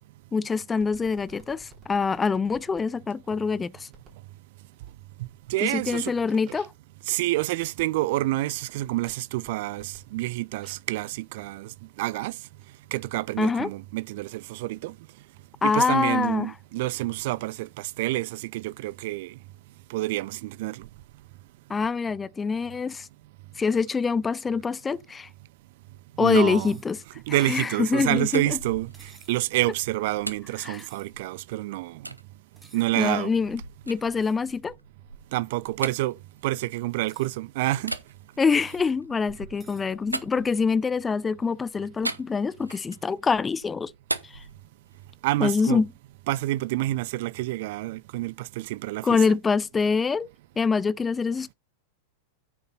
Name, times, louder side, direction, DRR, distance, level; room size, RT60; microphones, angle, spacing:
voice 1, 0.3-3.9 5.6-6.7 13.4-13.7 15.6-16.5 21.7-23.1 23.6-25.3 26.2-27.0 27.3-28.6 30.6-30.9 33.0-33.6 33.9-34.7 38.4-43.9 44.2-44.4 45.4-45.9 49.0-50.3 50.6-51.5, left 5 dB, 15° left, 0.4 m, -25 dB
sound 1, 0.8-2.9 3.9-4.3 4.7-5.2 5.6-11.0 11.8-13.0, right 3 dB, 30° right, 5.6 m, -56 dB
voice 2, 5.5-6.1 7.1-11.7 12.0-12.3 12.9-14.9 15.6-19.3 19.9-20.9 26.2-26.7 27.3-28.9 29.3-32.0 32.7-33.3 35.3-36.1 36.4-37.9 45.2-45.8 46.3-49.2, right 17 dB, 50° right, 0.5 m, -28 dB
sound 2, 26.5-26.9 28.9-29.5 30.7-31.1 32.6-32.9 34.2-34.4 35.8-36.0 36.9-37.4 38.6-38.9 39.6-39.9, right 2 dB, 5° right, 2.3 m, -55 dB
sound 3, 28.1-31.4 32.0-32.2 32.8-37.2 37.8-41.0 42.0-43.1 43.5-45.3, right 2 dB, 85° right, 0.8 m, -39 dB
9.5 x 6.8 x 4.0 m
figure-of-eight pair, 90°, 0 cm